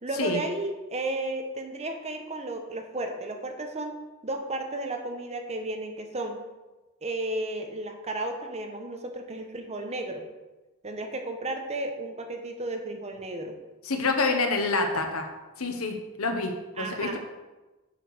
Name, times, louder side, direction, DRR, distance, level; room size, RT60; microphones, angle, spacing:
voice 1, 0.0-4.0 4.2-6.4 7.0-10.2 10.8-13.5 16.8-17.2, right 2 dB, 30° right, 4 dB, 1.0 m, -33 dB
voice 2, 13.8-15.3 15.6-17.2, left 3 dB, 90° left, 4 dB, 1.3 m, -27 dB
7.7 x 5.1 x 6.3 m, 1.1 s
head